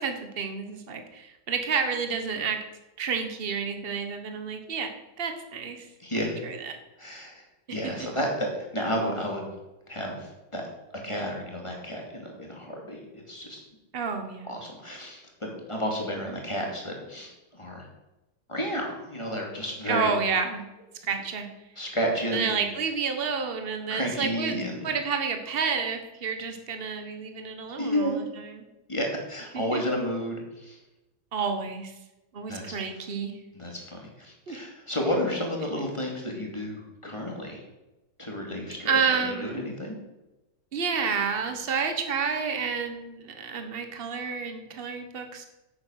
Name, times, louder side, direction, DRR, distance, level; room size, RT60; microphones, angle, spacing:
voice 1, 0.0-2.6 3.0-5.9 6.1-6.8 7.7-8.1 13.9-14.5 19.9-20.6 21.0-21.5 22.3-24.6 24.8-28.6 29.5-29.8 31.3-31.9 32.3-33.3 34.5-34.6 38.8-39.6 40.7-45.5, right 5 dB, 35° right, 6 dB, 1.4 m, -30 dB
voice 2, 6.0-6.4 7.0-7.4 7.7-9.5 9.9-10.6 11.0-13.6 14.4-17.9 18.5-20.1 21.8-22.6 23.9-24.9 27.8-28.2 28.9-30.8 32.5-32.8 33.5-37.6 38.2-40.0, equal, 15° left, 0 dB, 2.5 m, -31 dB
9.6 x 8.6 x 6.4 m, 1.0 s
omnidirectional pair, 1.9 m